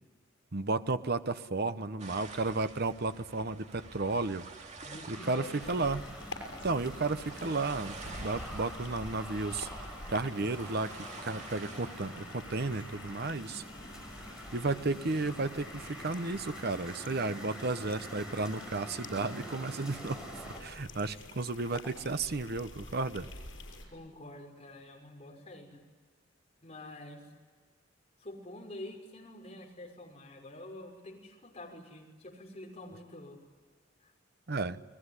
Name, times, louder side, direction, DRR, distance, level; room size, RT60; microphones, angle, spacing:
voice 1, 0.5-4.5 5.1-6.1 6.6-9.7 10.1-10.9 11.2-13.6 14.5-23.3 34.5-34.8, right 3 dB, 55° right, 11 dB, 1.0 m, -33 dB
sound 1, 2.0-12.2, right 3 dB, 40° right, 2.3 m, -49 dB
voice 2, 4.8-5.7 23.9-25.8 26.6-27.3 28.2-33.4 34.0-34.1, left 1 dB, 35° left, 1 dB, 5.8 m, -47 dB
sound 2, 5.1-20.6, equal, 5° right, 6.4 m, -46 dB
sound 3, 5.6-23.9, left 2 dB, 75° left, 7.0 m, -48 dB
29.5 x 20.5 x 9.9 m, 1.5 s
head